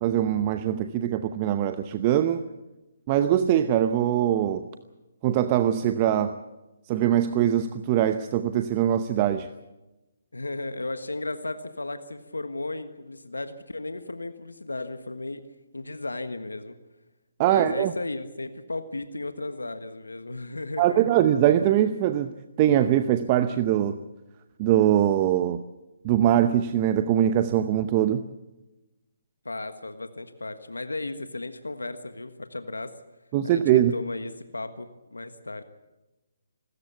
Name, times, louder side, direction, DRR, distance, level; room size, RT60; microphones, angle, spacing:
voice 1, 0.0-2.4 3.1-4.7 5.2-6.4 6.9-9.5 17.4-17.9 20.8-24.0 24.6-25.6 26.0-28.2 33.3-33.9, right 11 dB, 30° right, 10 dB, 0.8 m, -22 dB
voice 2, 10.3-15.4 15.7-16.8 17.4-21.2 29.4-32.9 33.4-35.6, left 2 dB, 90° left, 10 dB, 1.5 m, -35 dB
26.0 x 13.5 x 8.3 m, 1.0 s
figure-of-eight pair, 145°, 0 cm